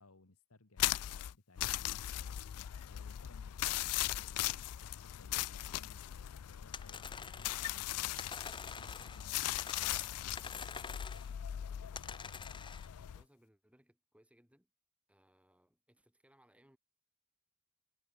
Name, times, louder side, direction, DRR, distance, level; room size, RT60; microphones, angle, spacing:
voice 1, 0.0-2.4 2.8-8.3 8.6-10.5, left 2 dB, 70° left, 1.8 m, -62 dB
sound 1, 0.8-13.2, left 13 dB, 90° left, 0.4 m, -39 dB
sound 2, 6.7-7.7 8.2-9.3 9.6-11.3 11.9-12.9, left 6 dB, 20° left, 0.7 m, -46 dB
voice 2, 12.7-14.7 15.1-16.8, equal, 5° right, 4.6 m, -69 dB
head